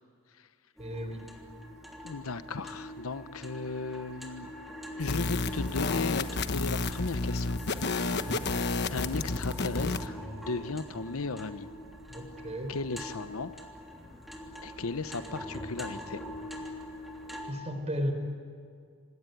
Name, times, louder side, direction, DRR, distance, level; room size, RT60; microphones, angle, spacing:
sound 1, 0.8-17.5, equal, ahead, 3.2 m, -44 dB
voice 1, 0.8-1.3 8.1-8.5 12.1-12.8 17.5-18.1, equal, 30° right, 6 dB, 4.1 m, -35 dB
voice 2, 2.0-4.5 5.0-7.6 8.9-11.7 12.7-13.5 14.6-16.2, left 3 dB, 80° left, 12 dB, 1.0 m, -36 dB
sound 2, 5.0-10.1, left 3 dB, 55° left, 1.1 m, -31 dB
27.5 x 19.5 x 9.3 m, 2.2 s
head